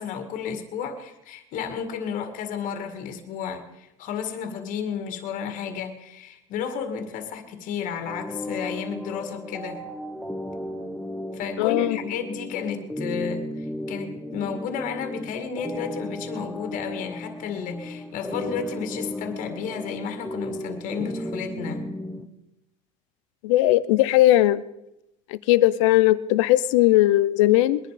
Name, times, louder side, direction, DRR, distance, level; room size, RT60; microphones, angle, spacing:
voice 1, 0.0-9.9 11.3-21.9, left 7 dB, 60° left, 7 dB, 2.0 m, -32 dB
sound 1, 8.1-22.3, left 1 dB, ahead, 1.1 m, -35 dB
voice 2, 11.6-12.0 23.4-24.6 25.5-27.8, left 15 dB, 90° left, 16 dB, 0.7 m, -18 dB
21.0 x 11.0 x 5.1 m, 0.88 s
supercardioid pair, 125°, 15 cm